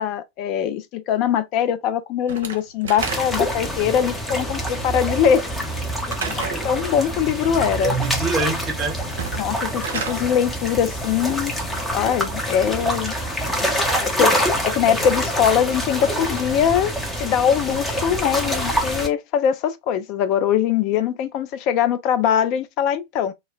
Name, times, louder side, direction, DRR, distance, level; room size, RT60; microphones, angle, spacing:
voice 1, 0.0-5.5 6.3-6.4 6.6-7.9 9.4-11.5 11.9-13.2 13.6-13.7 14.0-14.3 14.6-16.9 17.2-23.3, left 9 dB, 40° left, 0.4 m, -22 dB
Slam / Wood, 2.3-3.6 6.1-6.7 9.1-10.2, right 5 dB, 65° right, 0.5 m, -30 dB
sound 1, 3.0-19.1, equal, 5° left, 0.7 m, -26 dB
voice 2, 7.8-8.9 13.7-14.6, right 4 dB, 35° right, 0.9 m, -26 dB
2.2 x 2.1 x 3.7 m
figure-of-eight pair, 90°, 0 cm